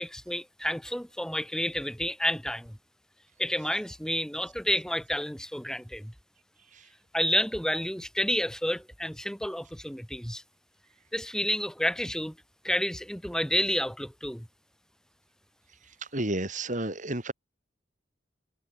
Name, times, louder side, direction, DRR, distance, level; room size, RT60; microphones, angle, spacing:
voice 1, 0.0-2.8 3.4-6.1 7.1-10.4 11.1-12.4 12.6-14.5, left 1 dB, 5° left, 8.0 m, -30 dB
voice 2, 16.1-17.3, right 1 dB, 45° right, 4.8 m, -31 dB
head